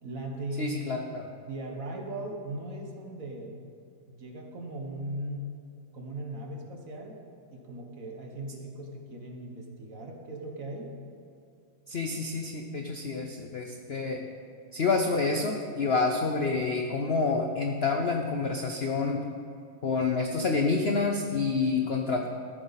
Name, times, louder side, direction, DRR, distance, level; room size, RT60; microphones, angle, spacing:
voice 1, 0.0-0.8 1.5-3.6 4.1-5.5 5.9-7.2 7.5-10.9, right 1 dB, 50° right, 1 dB, 1.6 m, -38 dB
voice 2, 0.6-1.3 11.9-14.2 14.7-19.3 19.8-22.3, left 4 dB, 65° left, 3 dB, 0.6 m, -28 dB
14.0 x 11.0 x 4.1 m, 2.5 s
omnidirectional pair, 2.1 m